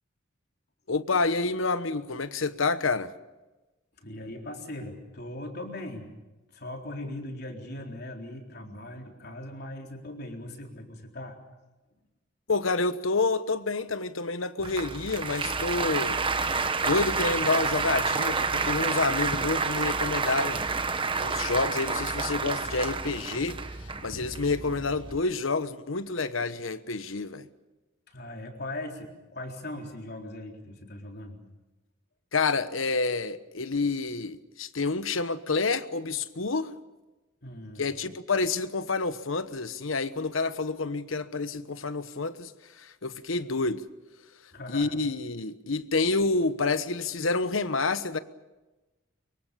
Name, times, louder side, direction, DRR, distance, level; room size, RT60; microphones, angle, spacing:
voice 1, 0.9-3.1 12.5-16.2 16.8-20.6 21.2-27.5 32.3-36.7 37.8-43.8 44.7-48.2, left 3 dB, 90° left, 1.2 m, -28 dB
voice 2, 4.0-6.1 6.5-11.4 28.1-31.4 37.4-37.9 44.5-44.9, left 1 dB, 55° left, 3.9 m, -39 dB
Applause, 14.6-25.2, right 4 dB, 25° right, 1.2 m, -29 dB
24.5 x 23.5 x 6.9 m
head